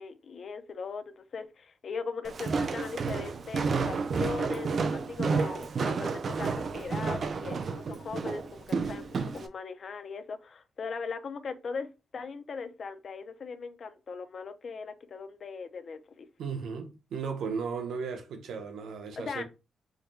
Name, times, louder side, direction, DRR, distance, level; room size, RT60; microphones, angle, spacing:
voice 1, 0.0-11.9 12.1-16.3 19.2-19.4, left 5 dB, 45° left, 0.5 m, -39 dB
Walk footsteps, 2.2-9.5, right 4 dB, 45° right, 0.4 m, -31 dB
voice 2, 16.4-19.4, right 5 dB, 80° right, 0.8 m, -35 dB
4.8 x 2.2 x 3.1 m
wide cardioid pair, 155°, 0 cm